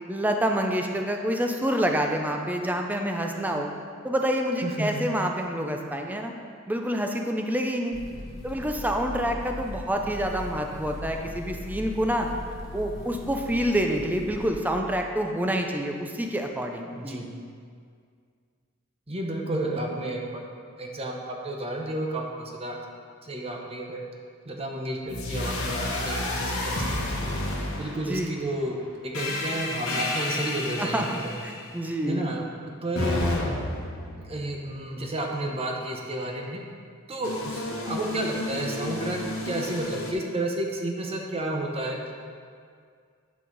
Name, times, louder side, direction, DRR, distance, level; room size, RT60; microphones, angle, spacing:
voice 1, 0.1-3.7 4.0-6.3 6.7-8.0 8.4-12.3 12.7-17.2 28.1-28.4 30.8-32.3, equal, 10° right, 3 dB, 0.5 m, -27 dB
voice 2, 4.6-5.0 16.9-17.3 19.1-20.5 20.8-22.8 23.2-24.0 24.4-27.3 27.8-28.8 29.0-31.3 32.1-32.4 32.8-33.3 34.2-36.6 37.1-39.2 39.4-42.1, right 1 dB, 30° right, 1 dB, 0.9 m, -31 dB
sound 1, 7.9-14.5, left 1 dB, 50° left, 1.3 m, -39 dB
sound 2, 25.1-28.4 29.1-31.7 32.9-35.0 37.2-40.1, left 2 dB, 80° left, 1.4 m, -31 dB
9.3 x 5.5 x 4.1 m, 2.1 s
head